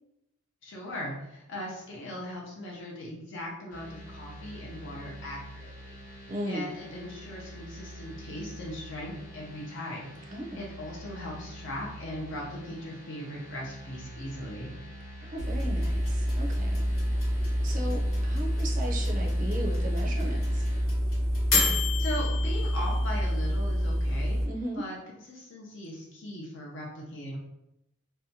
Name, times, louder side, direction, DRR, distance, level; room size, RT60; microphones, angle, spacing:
voice 1, 0.6-6.0 6.5-10.1 10.5-14.7 22.0-24.4 24.8-25.0 25.3-27.4, left 1 dB, 60° left, -2 dB, 0.5 m, -39 dB
sound 1, 3.7-20.8, equal, 45° left, 0.9 m, -46 dB
voice 2, 6.3-6.7 10.3-10.6 15.2-16.9 17.6-20.7 24.5-24.9, right 1 dB, 40° right, 0 dB, 0.5 m, -36 dB
sound 2, 15.4-24.4, left 1 dB, 85° left, 1.1 m, -27 dB
2.7 x 2.1 x 2.6 m, 0.83 s
head